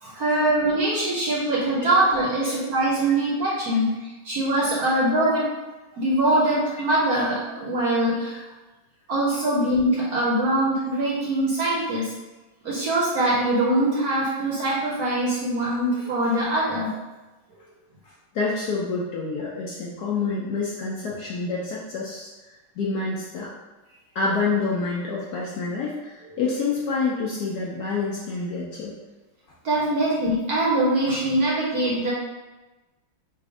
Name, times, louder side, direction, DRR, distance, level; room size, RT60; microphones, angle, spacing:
voice 1, 0.0-4.0 4.2-5.5 5.9-8.4 9.1-12.1 12.6-17.0 29.6-32.1, right 1 dB, 60° right, -4 dB, 1.0 m, -23 dB
voice 2, 18.3-22.3 22.8-23.5 24.1-28.9, left 4 dB, 70° left, -4 dB, 1.0 m, -27 dB
4.2 x 2.6 x 4.8 m, 1.1 s
omnidirectional pair, 2.3 m